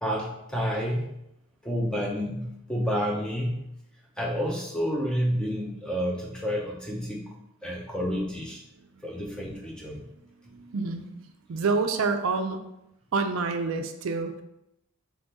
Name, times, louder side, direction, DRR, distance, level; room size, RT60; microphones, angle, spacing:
voice 1, 0.0-1.1 1.6-3.7 4.2-7.4 7.6-8.6 9.0-10.1, equal, 5° left, -2 dB, 0.5 m, -29 dB
voice 2, 8.8-9.2 10.4-12.6 13.1-14.4, right 4 dB, 70° right, 7 dB, 0.4 m, -28 dB
3.6 x 3.3 x 4.0 m, 0.84 s
head